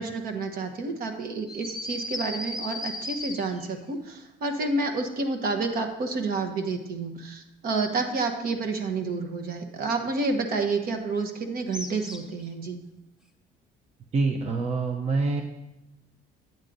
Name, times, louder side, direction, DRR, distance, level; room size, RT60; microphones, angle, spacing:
voice 1, 0.0-12.8, right 3 dB, 60° right, 6 dB, 1.1 m, -29 dB
sound 1, 1.5-3.8 11.7-12.4, left 2 dB, 5° right, 0.9 m, -35 dB
voice 2, 14.1-15.4, right 3 dB, 40° right, 3 dB, 0.8 m, -25 dB
9.0 x 7.5 x 3.9 m, 0.92 s
cardioid pair, 110°, 17 cm